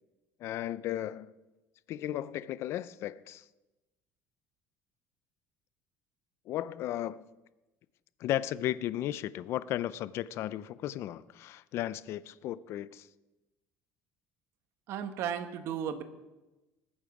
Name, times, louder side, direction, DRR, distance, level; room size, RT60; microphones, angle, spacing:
voice 1, 0.4-1.3 1.9-3.4 6.5-7.2 8.2-13.1, left 13 dB, 50° left, 0.5 m, -35 dB
voice 2, 14.9-16.0, right 8 dB, 50° right, 1.1 m, -34 dB
20.5 x 8.9 x 4.8 m
cardioid pair, 155°, 6 cm